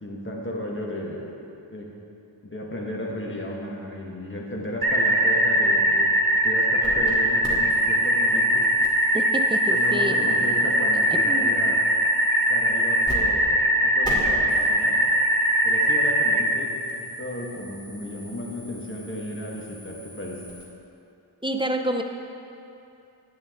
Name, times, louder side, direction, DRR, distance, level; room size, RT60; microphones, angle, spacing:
voice 1, 0.0-1.3 1.7-1.9 2.4-6.1 6.4-8.6 9.7-11.8 12.5-13.5 13.8-15.0 15.6-20.4, left 1 dB, 25° left, -2 dB, 1.5 m, -34 dB
sound 1, 4.8-16.4, equal, 50° right, 1.0 m, -21 dB
sound 2, 6.8-7.1 7.4-13.2 13.4-13.5 14.0-20.7, left 1 dB, 10° left, 2.3 m, -42 dB
voice 2, 9.1-10.4 11.1-11.6 21.4-22.0, right 1 dB, 10° right, 4 dB, 0.5 m, -28 dB
9.9 x 9.5 x 3.8 m, 2.7 s
wide cardioid pair, 70°, 47 cm